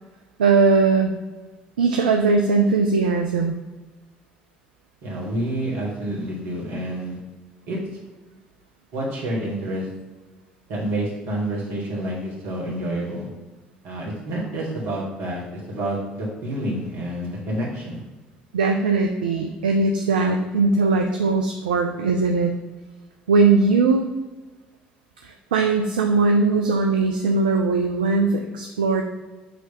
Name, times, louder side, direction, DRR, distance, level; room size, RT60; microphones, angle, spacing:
voice 1, 0.4-1.1 1.8-3.6 18.5-22.5 23.3-24.1 25.2-29.0, right 4 dB, 80° right, 4 dB, 0.4 m, -20 dB
voice 2, 5.0-7.2 7.7-7.8 8.9-9.9 10.7-13.3 13.8-18.0, right 1 dB, 65° right, -3 dB, 2.2 m, -28 dB
6.4 x 3.3 x 5.8 m, 1.2 s
figure-of-eight pair, 55°, 5 cm